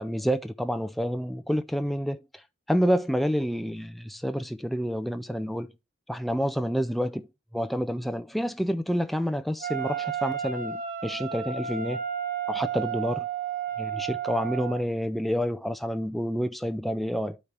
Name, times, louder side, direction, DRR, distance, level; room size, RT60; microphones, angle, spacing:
voice 1, 0.0-2.4 2.7-5.7 6.1-7.3 7.5-12.0 12.5-13.3 13.8-17.4, equal, ahead, 0.3 m, -28 dB
Wind instrument woodwind instrument, 9.6-14.8, right 8 dB, 40° right, 1.0 m, -32 dB
8.6 x 4.3 x 4.7 m
head